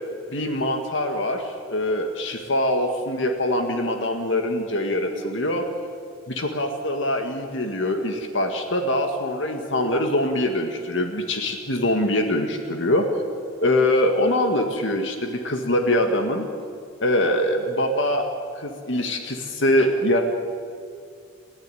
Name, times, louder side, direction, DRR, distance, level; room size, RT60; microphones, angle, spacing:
voice 1, 0.3-5.7 6.3-13.1 13.6-16.5 17.0-18.3 18.6-20.2, left 1 dB, 65° left, 5 dB, 1.8 m, -23 dB
30.0 x 11.0 x 9.9 m, 2.3 s
head